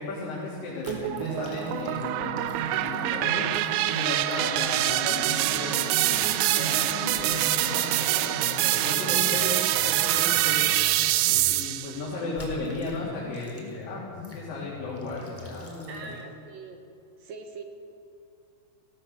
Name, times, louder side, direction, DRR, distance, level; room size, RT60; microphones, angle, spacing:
voice 1, 0.0-3.5 3.9-16.2, left 2 dB, 50° left, -6 dB, 4.7 m, -35 dB
sound 1, 0.7-4.0 4.7-11.7 12.2-15.7, left 8 dB, 75° left, 2.5 m, -44 dB
sound 2, 0.8-6.8 7.1-10.8 11.4-11.8 12.3-13.0 13.3-13.8 14.2-14.4 15.0-16.2, left 1 dB, 5° left, 3.1 m, -49 dB
sound 3, 0.9-12.0, right 14 dB, 85° right, 2.9 m, -25 dB
voice 2, 9.1-9.6 15.9-16.8 17.2-17.6, right 4 dB, 60° right, 5 dB, 2.7 m, -41 dB
19.0 x 17.0 x 8.0 m, 2.6 s
omnidirectional pair, 5.2 m